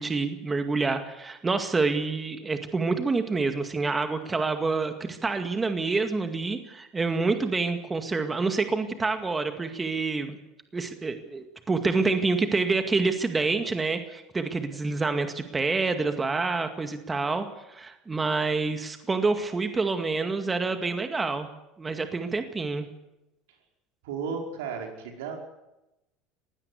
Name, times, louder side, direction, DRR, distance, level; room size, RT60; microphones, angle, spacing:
voice 1, 0.0-10.4 10.7-21.5 21.8-22.9, right 3 dB, 20° right, 7 dB, 2.1 m, -27 dB
voice 2, 24.0-25.4, right 5 dB, 80° right, 2 dB, 5.1 m, -34 dB
21.5 x 16.5 x 8.3 m, 0.94 s
hypercardioid pair, 85°, 0 cm